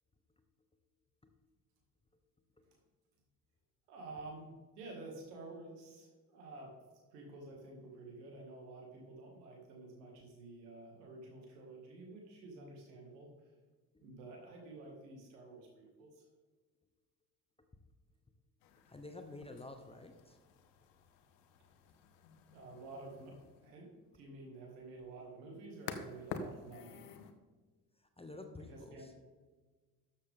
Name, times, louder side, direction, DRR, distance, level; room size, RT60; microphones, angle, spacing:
voice 1, 3.9-6.7 7.1-13.3 14.0-16.2 22.5-27.0 28.7-29.1, right 2 dB, 70° right, 0 dB, 2.4 m, -51 dB
sound 1, 18.6-27.3, left 5 dB, 65° left, 0.9 m, -50 dB
voice 2, 18.8-20.4 20.8-20.9 27.9-29.1, left 2 dB, 10° left, 7 dB, 1.0 m, -51 dB
13.0 x 7.0 x 3.7 m, 1.3 s
figure-of-eight pair, 45°, 49 cm